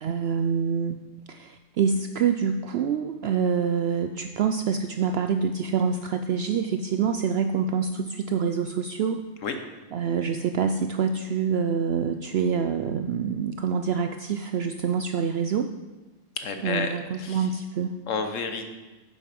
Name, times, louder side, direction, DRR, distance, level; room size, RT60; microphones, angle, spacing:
voice 1, 0.0-1.0 1.3-9.3 9.9-15.7 16.6-17.9, right 6 dB, 65° right, 7 dB, 0.7 m, -26 dB
voice 2, 16.4-17.5 18.1-18.8, left 5 dB, 80° left, 6 dB, 1.3 m, -31 dB
9.7 x 7.7 x 5.3 m, 1.2 s
omnidirectional pair, 1.3 m